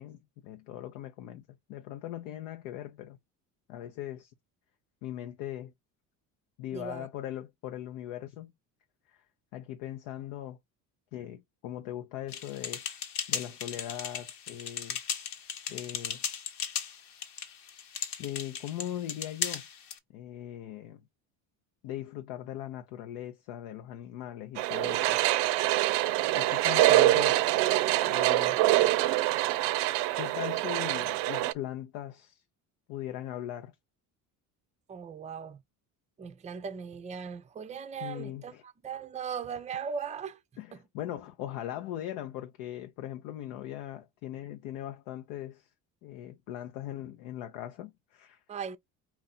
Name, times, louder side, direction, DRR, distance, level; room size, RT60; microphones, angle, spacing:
voice 1, 0.0-1.4 1.7-3.2 3.7-4.3 5.0-5.7 6.6-8.5 9.1-9.2 9.5-10.6 11.1-12.8 13.3-15.0 15.7-16.2 18.2-19.6 20.1-21.0 21.8-25.2 26.3-27.4 28.1-28.6 30.2-32.4 32.9-33.7 38.0-38.6 40.6-45.7 46.0-48.4, left 12 dB, 80° left, 0.7 m, -40 dB
voice 2, 6.7-7.1 34.9-35.6 36.2-40.4 40.7-40.8 48.5-48.8, right 6 dB, 15° right, 0.4 m, -38 dB
sound 1, 12.3-20.0, left 7 dB, 65° left, 1.0 m, -37 dB
sound 2, 24.6-31.5, right 16 dB, 75° right, 0.5 m, -25 dB
4.3 x 2.5 x 4.2 m
supercardioid pair, 85°, 44 cm